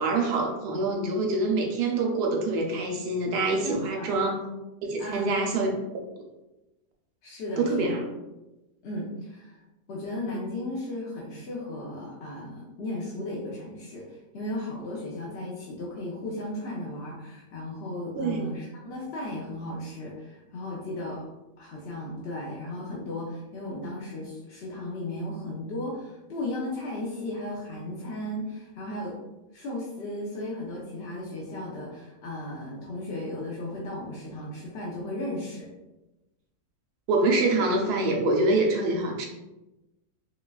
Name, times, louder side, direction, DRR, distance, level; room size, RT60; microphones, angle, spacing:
voice 1, 0.0-4.3 4.8-5.7 7.6-8.0 18.2-18.5 37.1-39.3, right 2 dB, 85° right, 1 dB, 1.2 m, -25 dB
voice 2, 3.6-4.2 5.0-5.5 7.2-8.0 8.8-9.5 9.9-21.2 21.6-29.1 29.5-35.7, left 1 dB, 60° left, -4 dB, 0.6 m, -35 dB
4.1 x 2.3 x 2.3 m, 1.0 s
omnidirectional pair, 1.7 m